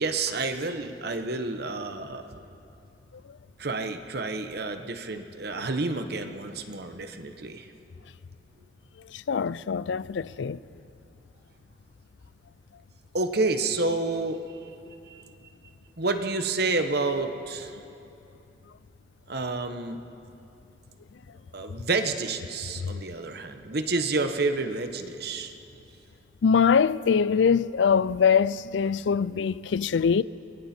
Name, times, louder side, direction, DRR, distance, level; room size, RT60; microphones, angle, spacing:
voice 1, 0.0-2.3 3.6-7.7 13.1-14.6 15.1-15.2 16.0-17.8 19.3-20.0 21.5-25.5, right 3 dB, 60° right, 1.1 m, -29 dB
voice 2, 9.3-10.6 26.4-30.2, left 6 dB, 80° left, 0.4 m, -23 dB
28.5 x 22.0 x 4.4 m
head